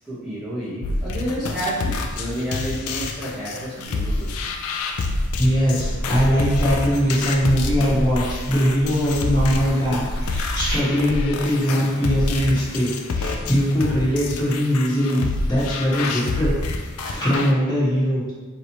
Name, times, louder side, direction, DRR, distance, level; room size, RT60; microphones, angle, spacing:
voice 1, 0.0-4.3, right 1 dB, ahead, -13 dB, 1.0 m, -30 dB
sound 1, 0.8-17.5, left 3 dB, 90° left, 0.4 m, -28 dB
sound 2, 3.8-10.8, right 1 dB, 85° right, 0.4 m, -30 dB
voice 2, 5.4-16.6 17.0-18.3, equal, 20° left, -8 dB, 1.3 m, -21 dB
4.7 x 3.0 x 2.9 m, 1.2 s
head